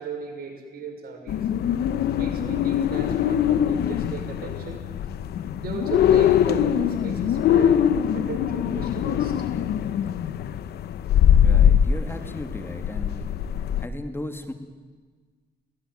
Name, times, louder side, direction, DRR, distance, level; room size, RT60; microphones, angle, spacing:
voice 1, 0.0-1.4 2.1-4.8 5.6-7.8 8.1-9.3, right 4 dB, 70° right, 3 dB, 6.0 m, -36 dB
sound 1, 1.3-13.9, left 9 dB, 80° left, 1.0 m, -22 dB
voice 2, 11.4-13.3 13.8-14.5, left 1 dB, 15° left, 7 dB, 2.5 m, -36 dB
22.0 x 18.0 x 9.7 m, 1.5 s
supercardioid pair, 65°, 16 cm